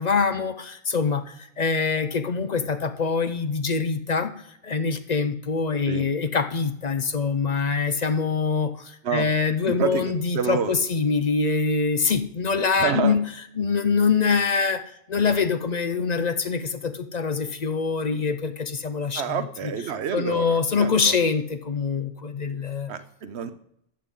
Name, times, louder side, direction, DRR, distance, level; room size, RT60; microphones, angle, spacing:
voice 1, 0.0-4.3 4.6-13.2 13.6-19.4 20.1-22.9, left 5 dB, 45° left, 10 dB, 0.7 m, -24 dB
voice 2, 9.7-10.7 12.8-13.2 19.1-21.2 22.9-23.5, right 7 dB, 90° right, 11 dB, 1.1 m, -28 dB
13.5 x 9.8 x 3.7 m, 0.75 s
omnidirectional pair, 1.1 m